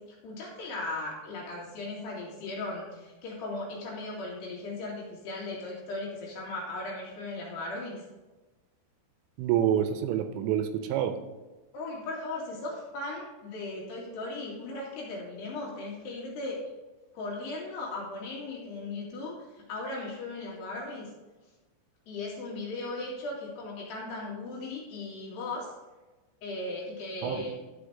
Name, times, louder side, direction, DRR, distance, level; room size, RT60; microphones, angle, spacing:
voice 1, 0.0-8.0 11.7-16.6 17.1-21.1 22.1-25.7 26.4-27.6, left 2 dB, 60° left, -4 dB, 4.0 m, -37 dB
voice 2, 9.4-11.2 27.2-27.5, right 10 dB, 80° right, 8 dB, 2.7 m, -27 dB
13.5 x 5.2 x 4.9 m, 1.2 s
omnidirectional pair, 5.6 m